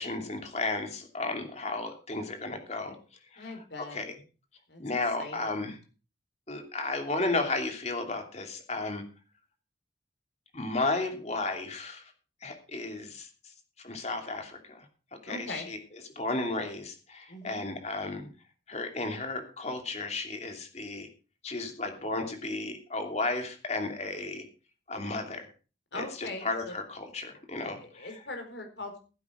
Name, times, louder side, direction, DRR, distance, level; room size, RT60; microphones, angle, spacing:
voice 1, 0.0-3.0 3.3-3.5 3.8-4.1 4.8-5.8 6.5-9.0 10.5-12.0 12.4-13.3 13.8-14.9 15.1-15.8 16.2-18.3 18.7-21.1 21.4-24.5 24.9-25.5 25.9-28.1, left 2 dB, 35° left, 5 dB, 2.8 m, -33 dB
voice 2, 3.4-4.0 4.7-4.8 5.2-5.6 15.3-15.7 17.3-17.6 25.9-26.7 27.8-29.0, left 2 dB, 70° left, 5 dB, 4.5 m, -40 dB
16.0 x 8.6 x 4.9 m, 0.35 s
head